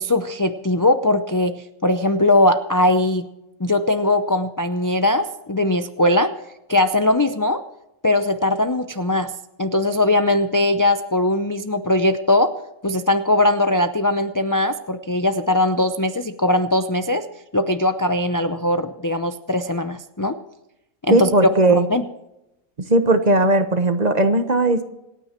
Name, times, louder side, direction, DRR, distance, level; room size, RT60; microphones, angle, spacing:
voice 1, 0.0-3.3 3.6-6.3 6.7-7.6 8.0-9.3 9.6-12.5 12.8-17.2 17.5-20.4 21.0-22.0, left 1 dB, 30° left, 8 dB, 0.3 m, -20 dB
voice 2, 21.1-21.9 22.9-24.8, right 2 dB, 30° right, 8 dB, 1.1 m, -17 dB
27.0 x 9.5 x 4.4 m, 0.91 s
omnidirectional pair, 1.5 m